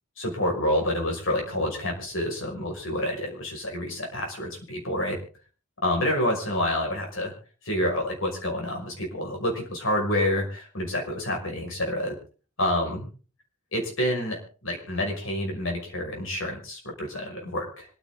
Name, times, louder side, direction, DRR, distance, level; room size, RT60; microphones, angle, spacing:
voice 1, 0.2-5.2 5.8-7.3 7.6-12.2 12.6-13.1 13.7-17.9, left 1 dB, 65° left, 1 dB, 5.7 m, -28 dB
26.0 x 9.6 x 3.9 m, 0.38 s
head